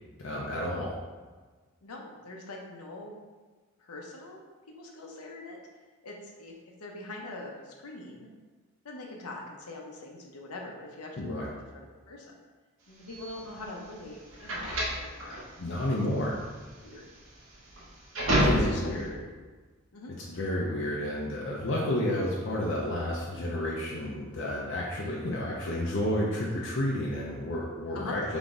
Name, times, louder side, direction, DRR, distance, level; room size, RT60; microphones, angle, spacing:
voice 1, 0.2-1.0 11.2-11.5 15.6-16.3 18.4-19.1 20.1-28.4, left 1 dB, 55° left, -4 dB, 0.6 m, -31 dB
voice 2, 1.8-3.1 3.8-4.4 4.7-5.6 6.0-6.5 6.8-8.3 8.8-11.3 11.5-12.3 12.9-15.4 15.9-16.0 16.8-17.0 18.4-19.2 19.9-20.1 27.9-28.2, left 2 dB, 85° left, 0 dB, 0.8 m, -43 dB
sound 1, 13.1-19.1, equal, 65° right, 1.1 m, -29 dB
3.9 x 3.5 x 3.7 m, 1.4 s
head